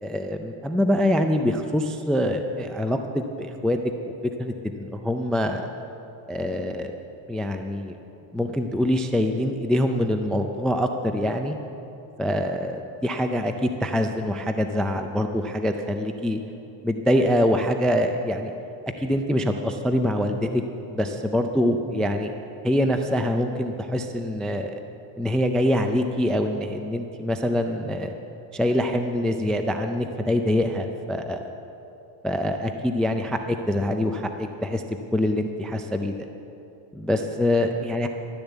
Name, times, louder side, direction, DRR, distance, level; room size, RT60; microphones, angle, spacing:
voice 1, 0.0-3.8 4.4-5.7 6.3-6.9 7.3-8.0 8.3-11.5 12.2-16.4 16.8-18.5 19.0-20.6 20.9-22.3 22.6-24.8 25.2-28.1 28.5-31.4 32.2-34.8 35.1-36.2 36.9-38.1, left 1 dB, ahead, 6 dB, 0.3 m, -24 dB
12.5 x 10.5 x 8.1 m, 2.8 s
cardioid pair, 140°, 50 cm